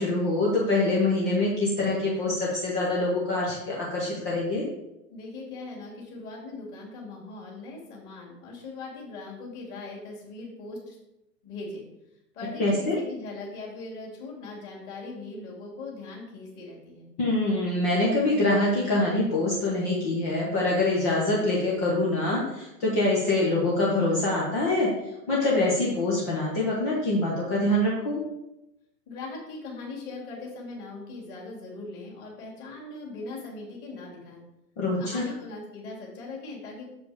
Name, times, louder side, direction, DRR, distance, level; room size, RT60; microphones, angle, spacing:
voice 1, 0.0-4.6 12.6-13.0 17.2-24.9 25.3-28.2 34.8-35.2, left 2 dB, 10° left, -4 dB, 0.5 m, -25 dB
voice 2, 5.1-11.0 11.4-11.9 12.3-17.1 29.1-34.4 35.0-36.8, left 3 dB, 30° left, -3 dB, 2.7 m, -40 dB
6.7 x 5.1 x 4.9 m, 0.89 s
figure-of-eight pair, 115°, 49 cm